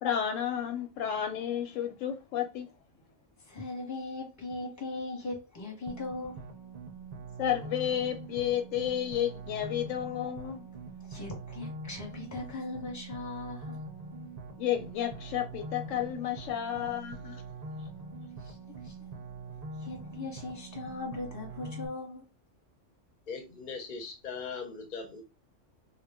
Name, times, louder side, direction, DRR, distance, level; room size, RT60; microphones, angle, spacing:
voice 1, 0.0-2.7 7.4-10.7 14.6-17.4, left 10 dB, 90° left, 0.9 m, -31 dB
voice 2, 3.4-6.5 11.1-13.8 18.4-18.6 18.8-19.1 19.8-22.3, left 3 dB, 15° left, 0.8 m, -39 dB
sound 1, 5.9-21.9, right 3 dB, 70° right, 0.3 m, -43 dB
voice 3, 23.3-25.2, left 5 dB, 55° left, 0.6 m, -40 dB
2.2 x 2.1 x 3.4 m
omnidirectional pair, 1.3 m